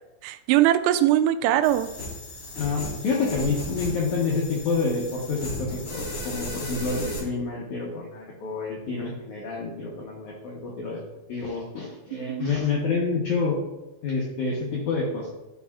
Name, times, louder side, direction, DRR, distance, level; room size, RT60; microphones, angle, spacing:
voice 1, 0.2-1.9 12.1-12.5, right 12 dB, 90° right, 12 dB, 2.8 m, -21 dB
sound 1, 1.6-7.2, left 1 dB, 35° left, 3.1 m, -35 dB
voice 2, 2.6-11.0 11.3-13.6 14.0-15.3, left 4 dB, 85° left, -2 dB, 1.7 m, -28 dB
12.5 x 5.5 x 2.4 m, 1.0 s
omnidirectional pair, 5.1 m